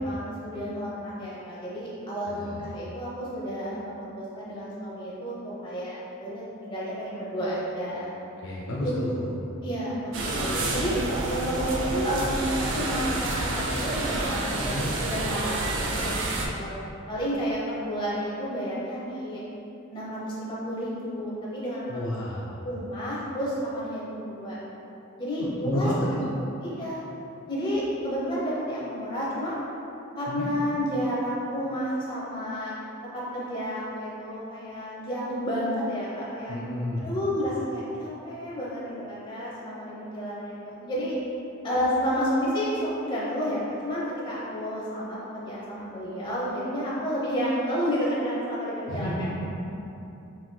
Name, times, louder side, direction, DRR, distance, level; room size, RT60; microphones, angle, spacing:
voice 1, 0.0-8.1 8.7-9.0 9.6-10.2 10.7-11.0 11.2-16.2 16.5-19.4 19.9-21.9 22.6-24.6 25.2-25.9 26.6-27.0 27.5-29.6 30.2-32.7 33.1-36.6 37.0-41.1 41.6-49.3, equal, 25° left, -7 dB, 0.8 m, -31 dB
voice 2, 2.3-2.6 8.4-9.3 14.6-14.9 21.9-22.5 25.6-26.3 30.3-30.5 36.5-37.1 48.9-49.5, left 1 dB, 60° left, -4 dB, 0.5 m, -31 dB
sound 1, 10.1-16.5, right 2 dB, 65° right, 0.5 m, -29 dB
5.9 x 3.0 x 2.2 m, 2.9 s
head